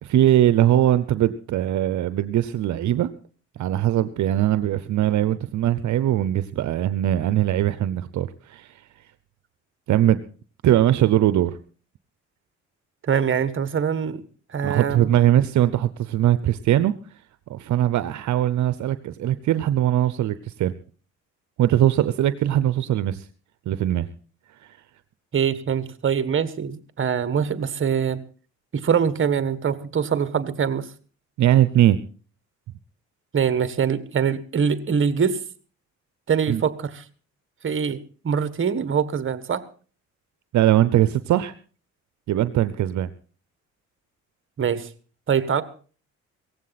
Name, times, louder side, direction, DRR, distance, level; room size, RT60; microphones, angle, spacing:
voice 1, 0.0-3.1 3.6-8.8 9.9-10.2 10.6-11.6 14.6-16.9 17.5-20.7 21.6-23.3 23.7-24.1 24.6-24.8 31.4-32.0 36.5-36.6 40.5-41.5 42.3-43.1, right 12 dB, 70° right, 13 dB, 0.8 m, -21 dB
voice 2, 13.0-14.2 14.5-15.1 25.3-28.2 28.7-30.9 33.3-35.4 36.3-37.0 37.6-38.0 38.2-39.6 44.6-44.9 45.3-45.6, right 7 dB, 40° right, 13 dB, 1.5 m, -23 dB
17.5 x 15.5 x 4.1 m, 0.39 s
cardioid pair, 90°, 30 cm